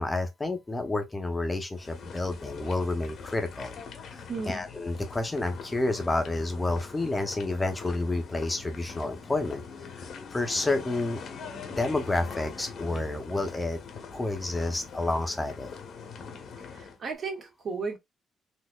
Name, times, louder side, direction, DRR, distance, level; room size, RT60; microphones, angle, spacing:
voice 1, 0.0-3.8 4.1-9.6 10.0-11.2 11.8-13.8 14.1-15.7, left 2 dB, 20° left, 0.8 m, -30 dB
sound 1, 1.8-17.0, left 5 dB, 65° left, 1.1 m, -43 dB
voice 2, 4.3-4.6 16.7-18.0, right 4 dB, 50° right, 1.5 m, -34 dB
4.2 x 2.6 x 2.3 m
cardioid pair, 90°, 0 cm